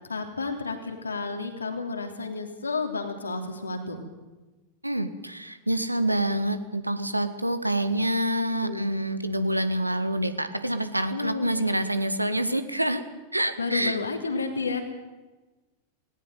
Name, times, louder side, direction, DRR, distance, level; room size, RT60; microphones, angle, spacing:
voice 1, 0.1-4.0 8.4-8.9 11.1-11.7 13.6-14.8, left 4 dB, 75° left, 5 dB, 3.1 m, -31 dB
voice 2, 4.8-13.0 13.3-14.0, right 1 dB, 85° right, 11 dB, 1.6 m, -27 dB
19.0 x 18.5 x 9.3 m, 1.2 s
figure-of-eight pair, 90°, 0 cm